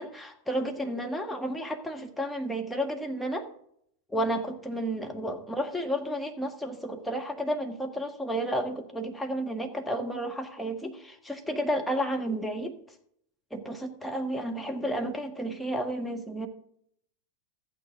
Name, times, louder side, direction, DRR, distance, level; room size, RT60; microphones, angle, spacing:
voice 1, 0.0-3.5 4.1-12.8 13.5-16.5, equal, 5° left, 2 dB, 1.5 m, -32 dB
14.0 x 9.1 x 3.6 m, 0.70 s
figure-of-eight pair, 90°, 0 cm